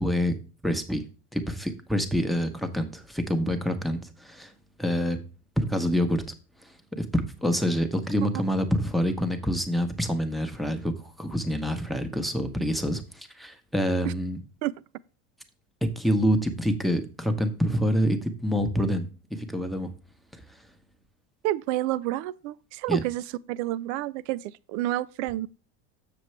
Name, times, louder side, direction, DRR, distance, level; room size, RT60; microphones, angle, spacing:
voice 1, 0.0-0.3 0.6-1.0 1.3-4.5 4.8-5.2 5.6-6.2 6.6-14.4 15.8-19.9 22.9-23.0, equal, ahead, 0.9 m, -27 dB
voice 2, 21.4-25.5, right 15 dB, 70° right, 0.5 m, -29 dB
7.1 x 6.9 x 3.2 m
supercardioid pair, 120°, 36 cm